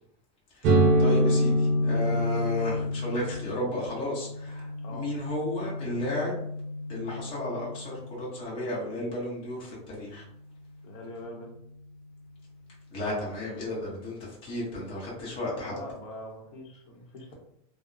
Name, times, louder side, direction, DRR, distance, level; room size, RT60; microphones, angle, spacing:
sound 1, 0.6-8.2, equal, 40° right, 0.5 m, -27 dB
voice 1, 1.0-6.4 6.9-10.2 12.9-15.7, left 1 dB, 30° left, -6 dB, 0.9 m, -33 dB
voice 2, 10.8-11.5 15.6-17.3, left 1 dB, 60° left, 1 dB, 0.8 m, -42 dB
2.8 x 2.0 x 2.4 m, 0.73 s
supercardioid pair, 155°, 19 cm